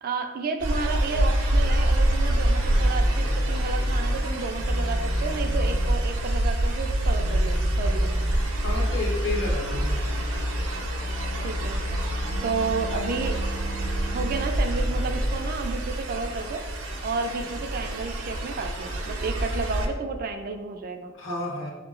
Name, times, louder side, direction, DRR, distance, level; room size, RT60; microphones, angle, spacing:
voice 1, 0.0-8.1 11.4-12.0 12.4-13.4 14.1-16.6 17.0-21.1, right 4 dB, 45° right, 5 dB, 0.4 m, -31 dB
sound 1, 0.6-19.9, right 1 dB, 85° right, 0.7 m, -27 dB
sound 2, 2.7-4.2 4.6-6.0 7.0-15.4, equal, 45° left, 0.6 m, -30 dB
voice 2, 8.6-10.0 21.1-21.7, left 2 dB, 65° left, -1 dB, 0.9 m, -31 dB
3.9 x 2.9 x 3.6 m, 1.3 s
head